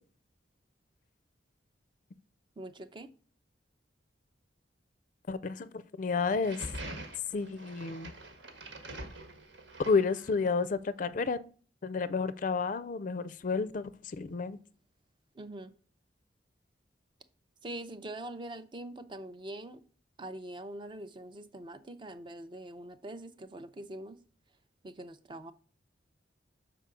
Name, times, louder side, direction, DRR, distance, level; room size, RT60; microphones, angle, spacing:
voice 1, 2.6-3.1 15.3-15.7 17.6-19.8 20.2-24.2 24.8-25.5, right 1 dB, 25° right, 0.5 m, -43 dB
voice 2, 5.3-5.7 6.0-6.6 7.3-8.1 9.9-11.4 11.8-14.6, left 4 dB, 45° left, 0.4 m, -31 dB
sound 1, 6.3-10.7, right 1 dB, 80° right, 1.5 m, -45 dB
6.8 x 4.7 x 3.7 m
head